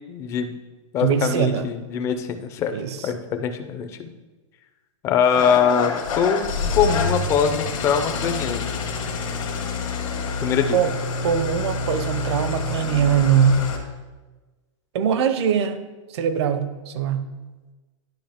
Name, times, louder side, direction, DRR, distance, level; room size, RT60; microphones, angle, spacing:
voice 1, 0.1-0.5 0.9-2.8 3.0-4.1 5.0-6.5 6.7-8.8 10.4-10.8, left 7 dB, 15° left, 7 dB, 0.4 m, -22 dB
voice 2, 1.0-1.7 2.7-3.1 10.7-10.9 11.2-13.6 14.9-15.8 16.1-17.3, right 8 dB, 55° right, 11 dB, 0.7 m, -21 dB
Engine starting / Idling, 5.3-13.8, left 4 dB, 85° left, 1.7 m, -27 dB
10.5 x 5.0 x 3.6 m, 1.2 s
hypercardioid pair, 160°, 17 cm